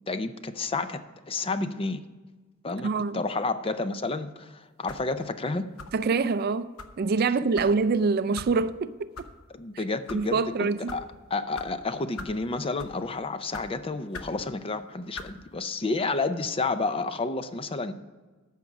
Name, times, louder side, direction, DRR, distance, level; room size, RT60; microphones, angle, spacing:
voice 1, 0.1-2.0 2.6-5.7 9.5-17.9, left 3 dB, 25° left, 0.5 m, -30 dB
voice 2, 2.7-3.3 5.9-9.1 10.1-10.9, right 4 dB, 50° right, 0.4 m, -25 dB
sound 1, 4.9-5.1 5.8-6.1 6.8-6.9 7.5-7.7 8.3-8.5 9.1-9.3 9.9-10.2 10.9-11.0 11.5-11.7 12.2-12.4 12.8-13.0 13.5-13.7 14.1-14.4 15.1-15.3, left 3 dB, 85° left, 0.9 m, -41 dB
14.0 x 5.9 x 6.0 m
head